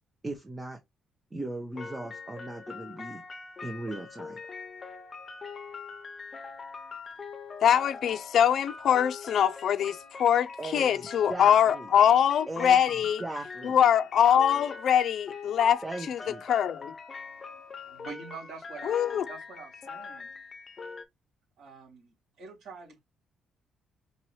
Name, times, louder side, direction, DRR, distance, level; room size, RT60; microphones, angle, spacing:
voice 1, 0.2-0.8 1.3-3.2 3.6-4.4 10.6-10.8 11.3-11.9 12.5-12.8 13.2-13.8 15.8-16.4, right 2 dB, 20° right, 1.0 m, -37 dB
sound 1, 1.8-21.0, left 5 dB, 35° left, 0.8 m, -43 dB
voice 2, 7.6-13.2 13.6-16.2 16.5-16.9 18.8-19.2, left 9 dB, 65° left, 0.4 m, -23 dB
voice 3, 17.9-19.0 19.3-20.3 21.6-23.0, right 4 dB, 75° right, 3.4 m, -45 dB
5.3 x 3.0 x 3.0 m
cardioid pair, 90°, 0 cm